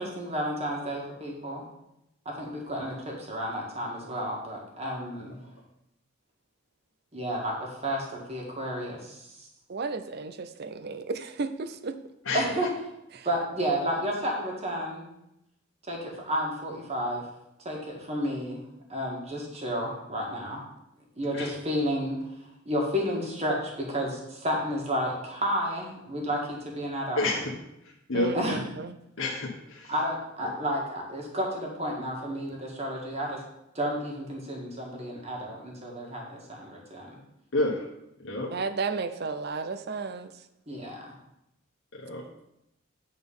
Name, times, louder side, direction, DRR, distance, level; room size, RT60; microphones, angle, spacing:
voice 1, 0.0-1.6 2.3-5.4 7.1-9.5 12.3-12.7 13.2-15.0 15.9-17.2 17.7-18.6 18.9-20.6 21.2-22.2 22.7-27.3 28.3-28.6 29.9-33.4 33.8-37.1 40.7-41.0, equal, 30° right, -1 dB, 1.7 m, -31 dB
voice 2, 9.7-12.0 13.1-13.3 28.1-28.9 38.5-40.3, right 4 dB, 55° right, 10 dB, 0.5 m, -33 dB
voice 3, 27.2-27.5 27.8-28.3 29.2-29.9 37.5-37.9 38.2-38.5 42.0-42.2, left 2 dB, 80° left, -3 dB, 1.2 m, -29 dB
8.7 x 4.1 x 5.5 m, 0.84 s
head